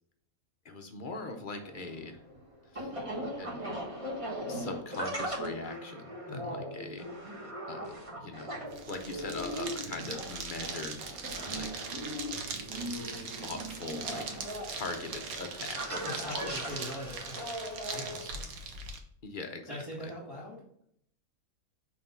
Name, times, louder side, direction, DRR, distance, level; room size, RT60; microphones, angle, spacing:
voice 1, 0.6-2.2 2.7-3.0 3.4-3.6 4.5-7.4 7.7-7.9 8.2-8.6 8.9-11.9 12.7-14.3 14.7-16.4 19.2-19.7 20.0-20.1, left 3 dB, 45° left, 5 dB, 0.7 m, -41 dB
sound 1, 1.6-18.2, equal, 25° right, 1.3 m, -39 dB
voice 2, 6.2-6.6 15.6-17.4 17.8-18.5 19.7-20.6, equal, ahead, -7 dB, 2.0 m, -42 dB
sound 2, 8.7-19.0, right 5 dB, 75° right, 1.3 m, -41 dB
5.7 x 3.7 x 5.4 m, 0.69 s
omnidirectional pair, 1.5 m